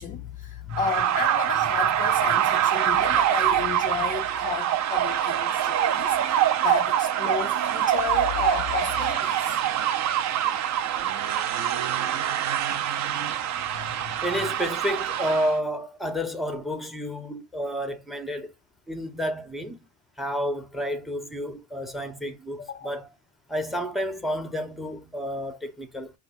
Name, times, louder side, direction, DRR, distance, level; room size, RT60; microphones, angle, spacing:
voice 1, 0.0-9.6 13.7-14.2 22.6-22.9, left 7 dB, 20° left, 0.3 m, -33 dB
sound 1, 0.7-15.6, right 11 dB, 40° right, 0.6 m, -25 dB
voice 2, 14.2-18.5 18.9-19.8 20.2-23.1 23.5-26.1, equal, ahead, 0.7 m, -30 dB
4.8 x 2.4 x 4.1 m
supercardioid pair, 110°, 44 cm